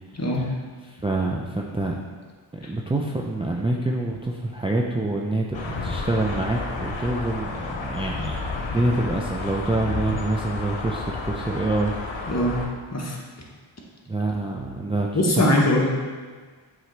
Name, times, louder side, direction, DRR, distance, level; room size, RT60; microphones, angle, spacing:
voice 1, 0.1-0.5 2.6-2.7 12.3-12.6 12.9-13.2 15.1-15.9, left 1 dB, 35° left, -2 dB, 1.3 m, -21 dB
voice 2, 0.9-2.0 2.5-12.3 14.1-15.1 15.3-15.5, right 2 dB, 10° right, -1 dB, 0.5 m, -26 dB
sound 1, 5.5-12.7, left 3 dB, 75° left, 1.0 m, -31 dB
7.6 x 3.8 x 3.3 m, 1.5 s
cardioid pair, 60°, 47 cm